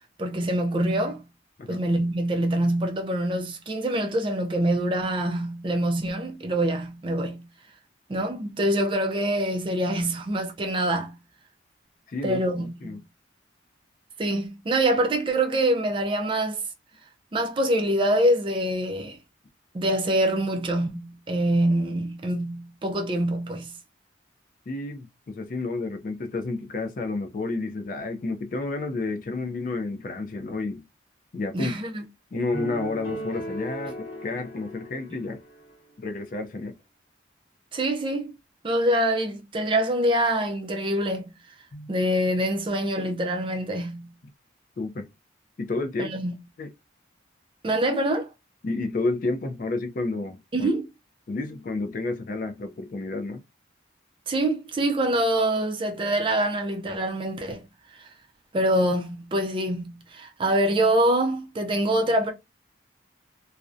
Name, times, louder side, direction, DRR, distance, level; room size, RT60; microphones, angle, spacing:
voice 1, 0.2-1.2 1.7-7.5 8.1-11.2 12.2-13.0 14.2-16.6 17.3-19.2 19.7-23.7 31.5-32.0 37.7-38.3 38.6-41.3 41.9-44.1 46.0-46.4 47.6-48.3 50.5-50.9 54.3-57.6 58.0-58.1 58.5-62.3, right 1 dB, 25° right, 0.4 m, -25 dB
voice 2, 12.1-13.0 24.7-30.8 31.3-31.7 32.3-34.0 34.2-35.4 36.0-36.8 41.7-41.9 44.8-45.1 45.6-46.1 46.6-46.7 48.6-50.7 51.3-53.4, left 3 dB, 45° left, 0.3 m, -30 dB
sound 1, 32.5-35.8, right 1 dB, 65° left, 0.8 m, -37 dB
2.4 x 2.1 x 2.4 m
head